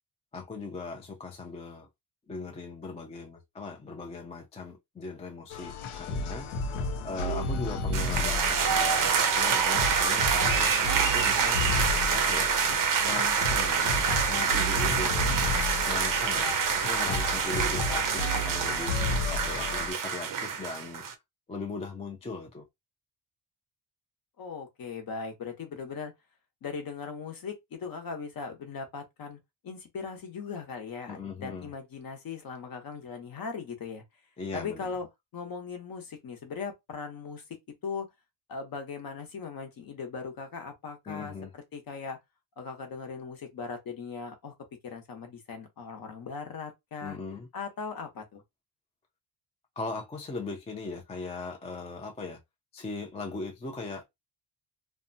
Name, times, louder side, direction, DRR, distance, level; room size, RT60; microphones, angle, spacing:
voice 1, 0.3-1.9 2.3-6.7 7.0-11.6 12.1-12.5 13.0-15.3 15.8-19.0 19.3-21.0 21.5-22.6 31.1-31.7 34.4-34.9 41.1-41.5 47.0-47.5 49.8-52.4 52.7-54.1, left 3 dB, 15° left, 0.3 m, -39 dB
sound 1, 5.5-19.9, left 2 dB, 90° left, 0.7 m, -32 dB
sound 2, 7.9-21.1, right 6 dB, 45° right, 0.5 m, -26 dB
voice 2, 14.3-15.4 24.4-26.1 26.6-34.0 34.5-35.1 35.3-38.1 38.5-42.2 42.6-44.5 44.8-47.2 47.5-48.4, left 5 dB, 45° left, 0.8 m, -39 dB
2.6 x 2.2 x 2.6 m
wide cardioid pair, 165°, 47 cm